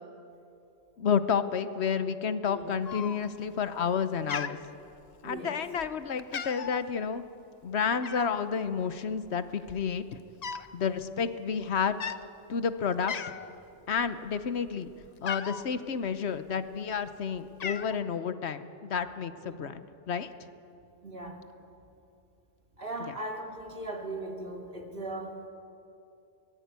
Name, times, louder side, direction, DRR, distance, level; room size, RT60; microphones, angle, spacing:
voice 1, 1.0-4.6 5.2-7.2 7.6-10.2 10.7-12.0 12.5-13.1 13.9-14.9 15.2-20.3 23.1-23.2, left 6 dB, 70° left, 11 dB, 1.1 m, -30 dB
Cat, 2.8-3.5 3.8-4.0 4.3-5.3 5.8-5.9 6.2-6.8 8.0-8.4 9.2-9.3 9.6-10.7 11.0-11.2 11.9-12.2 12.7-12.8 13.1-13.6 14.0-15.7 16.5-17.1 17.3-18.0, left 6 dB, 45° left, 0.7 m, -37 dB
voice 2, 5.2-5.6 19.4-19.7 21.0-21.4 22.8-25.5, right 2 dB, 55° right, 1 dB, 2.8 m, -38 dB
23.5 x 19.0 x 8.2 m, 2.7 s
omnidirectional pair, 1.1 m